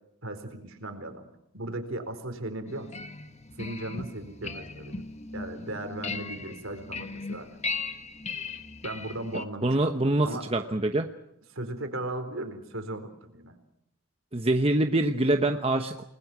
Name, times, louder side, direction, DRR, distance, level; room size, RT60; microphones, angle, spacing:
voice 1, 0.2-1.3 1.5-3.1 3.6-5.0 5.3-7.5 8.8-10.5 11.5-13.6, right 1 dB, 60° right, 8 dB, 4.2 m, -37 dB
sound 1, 2.7-9.4, left 3 dB, 30° left, 1.4 m, -38 dB
voice 2, 9.6-11.1 14.3-16.0, right 2 dB, 25° right, 6 dB, 1.0 m, -25 dB
29.0 x 20.5 x 6.1 m, 0.80 s
head